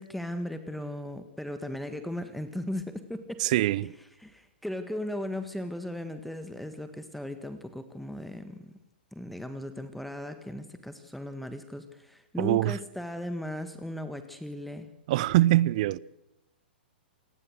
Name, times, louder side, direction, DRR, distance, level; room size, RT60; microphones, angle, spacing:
voice 1, 0.0-3.5 4.2-8.7 9.1-14.9, left 1 dB, ahead, 1.5 m, -37 dB
voice 2, 3.4-3.9 12.4-12.8 15.1-16.0, right 16 dB, 45° right, 0.7 m, -23 dB
27.0 x 19.5 x 6.6 m
figure-of-eight pair, 110°, 6 cm